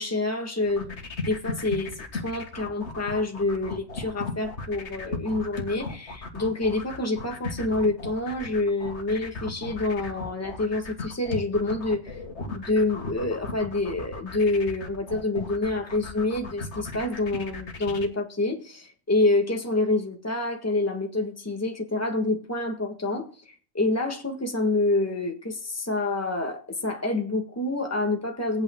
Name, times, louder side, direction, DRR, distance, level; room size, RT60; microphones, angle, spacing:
voice 1, 0.0-28.6, left 2 dB, 15° left, 3 dB, 1.6 m, -27 dB
sound 1, 0.6-18.1, left 3 dB, 90° left, 1.8 m, -36 dB
20.5 x 8.7 x 2.2 m, 0.43 s
omnidirectional pair, 1.1 m